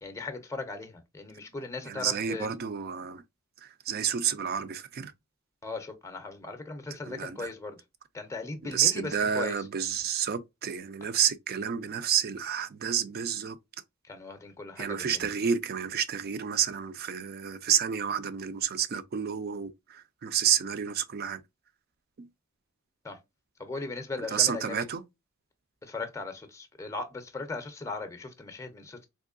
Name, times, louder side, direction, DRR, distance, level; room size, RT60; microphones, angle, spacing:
voice 1, 0.0-2.5 5.6-7.8 8.1-9.5 14.0-15.3 23.0-23.2 23.6-24.8 25.8-29.1, left 3 dB, 15° left, 0.6 m, -38 dB
voice 2, 1.8-3.2 3.6-5.1 7.1-7.5 8.7-13.6 14.8-21.4 22.2-22.3 24.3-25.0, right 8 dB, 45° right, 0.4 m, -30 dB
3.5 x 3.0 x 2.4 m
head